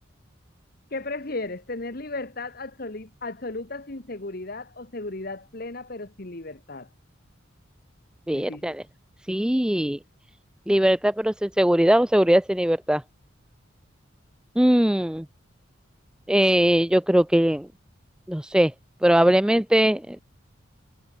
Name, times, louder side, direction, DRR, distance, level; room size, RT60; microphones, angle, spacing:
voice 1, 0.9-6.9 8.3-8.7, left 2 dB, 50° left, 1.5 m, -35 dB
voice 2, 8.3-8.8 9.3-10.0 10.7-13.0 14.6-15.3 16.3-17.7 18.3-18.7 19.0-20.2, equal, 5° right, 0.4 m, -20 dB
head